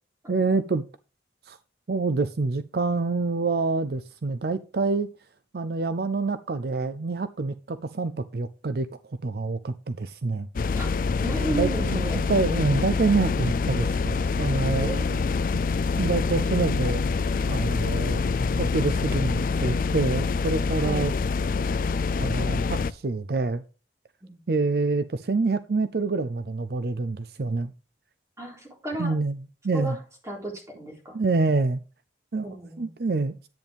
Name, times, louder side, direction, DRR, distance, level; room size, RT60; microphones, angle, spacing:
voice 1, 0.3-0.8 1.5-1.6 1.9-5.1 5.5-10.5 11.5-12.0 12.3-14.9 16.0-17.0 17.5-18.2 18.6-21.1 22.2-23.6 24.5-27.7 29.0-30.0 31.1-31.8 32.3-33.4, right 3 dB, 55° right, 0.5 m, -26 dB
sound 1, 10.6-22.9, left 4 dB, 45° left, 0.4 m, -26 dB
voice 2, 11.2-12.2 14.8-15.5 20.8-21.0 24.2-24.4 28.4-29.2 29.7-30.0 30.2-31.2 32.4-32.9, right 2 dB, 15° right, 3.9 m, -34 dB
10.5 x 9.0 x 3.4 m
head